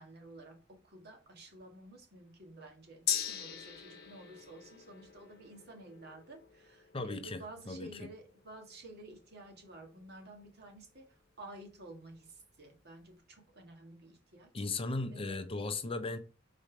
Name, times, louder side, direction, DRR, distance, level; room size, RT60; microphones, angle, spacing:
voice 1, 0.0-11.0 11.4-14.6 15.1-15.4, right 1 dB, 55° right, 1.7 m, -52 dB
Gong, 3.1-10.8 11.2-11.3, left 9 dB, 55° left, 1.0 m, -42 dB
voice 2, 6.9-8.1 14.5-16.2, left 3 dB, 30° left, 0.6 m, -37 dB
4.9 x 4.2 x 5.0 m
head